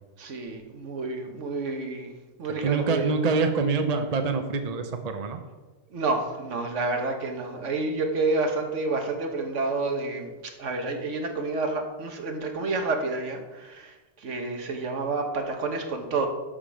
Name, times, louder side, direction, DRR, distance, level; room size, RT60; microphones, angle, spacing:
voice 1, 0.2-2.1 2.4-3.1 5.9-10.3 10.6-16.3, right 3 dB, 70° right, 4 dB, 1.4 m, -29 dB
voice 2, 2.6-5.4, right 4 dB, 35° right, 6 dB, 0.8 m, -25 dB
12.5 x 5.2 x 5.2 m, 1.2 s
omnidirectional pair, 1.3 m